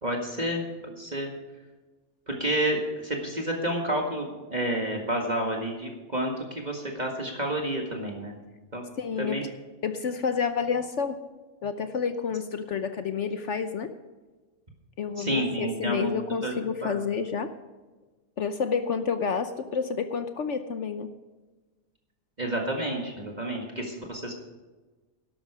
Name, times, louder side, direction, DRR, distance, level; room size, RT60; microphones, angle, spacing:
voice 1, 0.0-1.3 2.3-8.3 8.7-8.8 9.2-9.4 15.2-16.1 16.4-16.5 16.8-17.0 22.4-24.3, right 1 dB, 30° right, 0 dB, 1.9 m, -30 dB
voice 2, 9.0-9.4 9.8-11.2 11.6-13.9 15.0-17.5 18.4-21.1, left 6 dB, 60° left, 9 dB, 1.0 m, -29 dB
13.0 x 11.5 x 4.9 m, 1.2 s
omnidirectional pair, 1.5 m